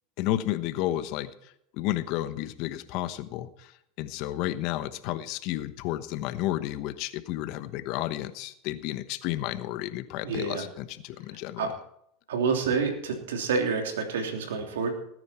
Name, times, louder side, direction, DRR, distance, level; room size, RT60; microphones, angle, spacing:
voice 1, 0.2-1.3 1.7-3.7 4.0-11.7, left 14 dB, 60° left, 12 dB, 1.1 m, -32 dB
voice 2, 10.2-10.7 11.6-11.7 12.3-14.9, right 5 dB, 85° right, 3 dB, 3.2 m, -28 dB
19.5 x 9.6 x 4.4 m, 0.72 s
hypercardioid pair, 105°, 0 cm